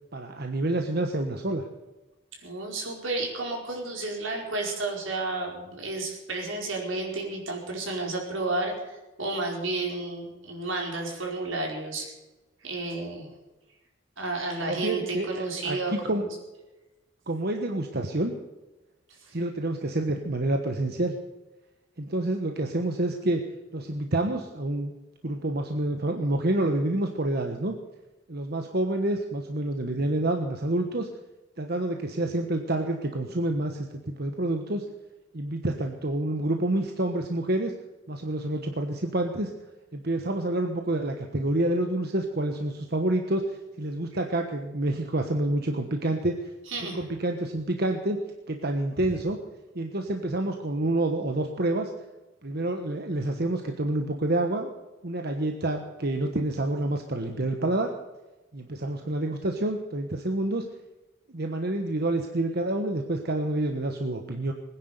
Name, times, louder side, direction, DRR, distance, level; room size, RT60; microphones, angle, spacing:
voice 1, 0.1-1.6 14.6-16.3 17.3-18.3 19.3-21.1 22.0-23.4 23.7-24.9 25.2-27.8 28.3-31.1 31.6-34.8 35.3-37.7 38.1-39.5 39.9-46.4 46.9-49.4 49.7-51.9 52.4-54.7 55.0-57.9 58.5-60.7 61.3-64.5, right 1 dB, 55° right, 4 dB, 1.3 m, -28 dB
voice 2, 2.4-12.1 12.6-13.3 14.2-16.3 19.2-19.3 46.7-47.0, right 2 dB, 85° right, 0 dB, 4.8 m, -32 dB
20.5 x 10.0 x 6.7 m, 1.1 s
head